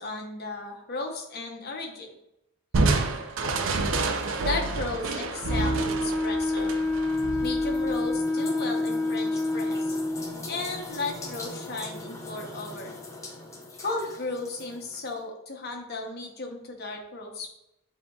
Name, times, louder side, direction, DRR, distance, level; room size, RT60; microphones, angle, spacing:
voice 1, 0.0-2.1 4.4-6.8 7.4-10.0 10.5-12.9 13.8-17.5, left 3 dB, 45° left, 2 dB, 0.8 m, -35 dB
Crushing, 2.7-8.1, right 3 dB, 60° right, 0.5 m, -28 dB
Wind instrument woodwind instrument, 5.4-10.3, left 2 dB, 90° left, 0.9 m, -27 dB
sound 1, 5.6-15.2, left 2 dB, 15° left, 0.5 m, -42 dB
8.1 x 2.8 x 2.3 m, 0.86 s
head